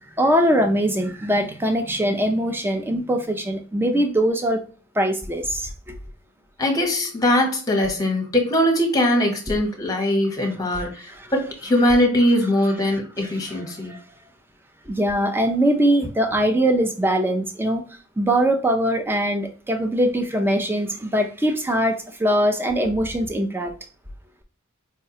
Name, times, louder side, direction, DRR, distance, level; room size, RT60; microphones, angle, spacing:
voice 1, 0.2-4.6 5.0-5.7 10.7-10.8 11.1-11.3 13.9-14.0 14.9-17.8 18.2-23.7, right 1 dB, 10° right, 5 dB, 0.4 m, -22 dB
voice 2, 6.6-13.9, left 1 dB, 15° left, 1 dB, 0.9 m, -21 dB
4.7 x 2.2 x 2.8 m, 0.40 s
head